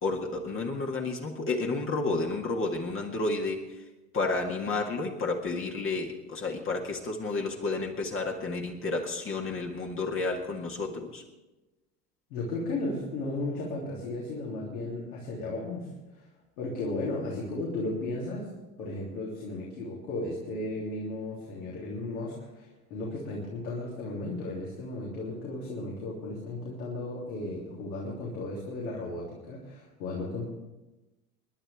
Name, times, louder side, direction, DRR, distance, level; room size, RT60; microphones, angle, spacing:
voice 1, 0.0-3.8 4.1-11.2, left 3 dB, 25° left, 1 dB, 1.8 m, -31 dB
voice 2, 12.3-16.3 16.6-18.5 18.8-30.5, left 2 dB, 65° left, -4 dB, 3.5 m, -35 dB
29.0 x 11.0 x 3.6 m, 1.1 s
figure-of-eight pair, 80°, 46 cm